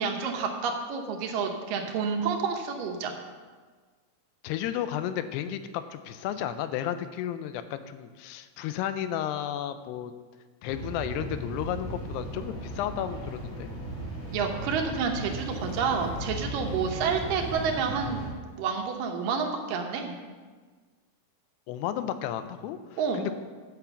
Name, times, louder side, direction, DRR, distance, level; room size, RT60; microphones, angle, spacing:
voice 1, 0.0-3.1 14.3-18.2 18.6-20.1 23.0-23.3, right 5 dB, 70° right, 3 dB, 2.2 m, -29 dB
voice 2, 4.4-10.1 10.6-13.7 21.7-23.3, left 11 dB, 85° left, 11 dB, 2.7 m, -33 dB
sound 1, 10.6-18.3, right 1 dB, 55° left, 4.9 m, -36 dB
9.9 x 5.9 x 7.0 m, 1.4 s
omnidirectional pair, 4.7 m